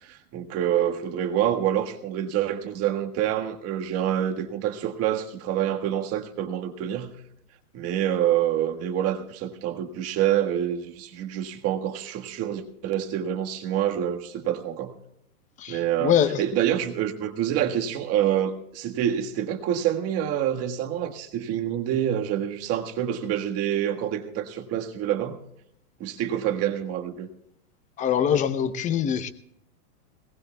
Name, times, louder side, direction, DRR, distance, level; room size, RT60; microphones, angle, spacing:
voice 1, 0.0-7.2 7.7-14.9 15.7-25.4 26.0-27.3, right 10 dB, 30° right, 1.5 m, -27 dB
voice 2, 15.6-16.4 28.0-29.3, left 9 dB, 15° left, 0.7 m, -23 dB
21.0 x 19.0 x 2.3 m
hypercardioid pair, 140°, 46 cm